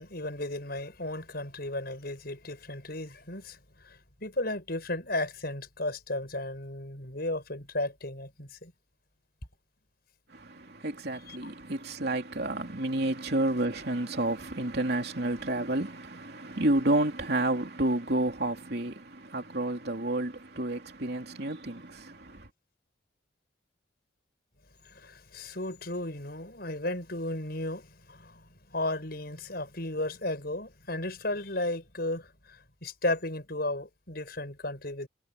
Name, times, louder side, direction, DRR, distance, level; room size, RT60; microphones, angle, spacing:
voice 1, 0.0-8.7 11.3-11.5 24.8-35.1, left 1 dB, 50° left, 7.4 m, -34 dB
voice 2, 10.3-22.5, right 1 dB, 55° right, 3.2 m, -30 dB
head